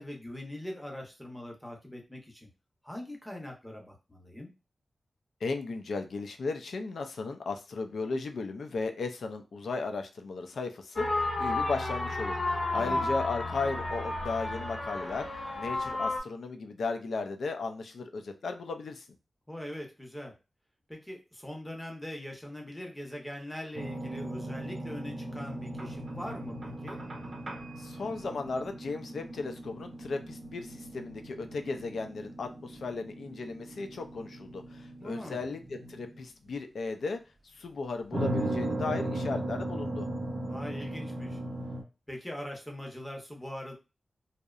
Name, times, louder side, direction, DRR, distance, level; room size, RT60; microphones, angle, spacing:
voice 1, 0.0-2.5 2.8-4.5 12.7-13.1 19.5-20.3 20.9-27.0 35.0-35.4 40.5-41.4 42.1-43.8, left 1 dB, 10° left, 1 dB, 0.7 m, -42 dB
voice 2, 5.4-15.3 15.5-19.1 27.8-37.2 37.5-40.1, left 3 dB, 80° left, 6 dB, 0.4 m, -35 dB
sound 1, 11.0-16.2, left 2 dB, 40° left, 0.8 m, -32 dB
sound 2, 23.7-36.5 38.1-41.8, right 1 dB, 45° right, 0.5 m, -38 dB
2.7 x 2.0 x 2.4 m, 0.29 s
wide cardioid pair, 110°, 0 cm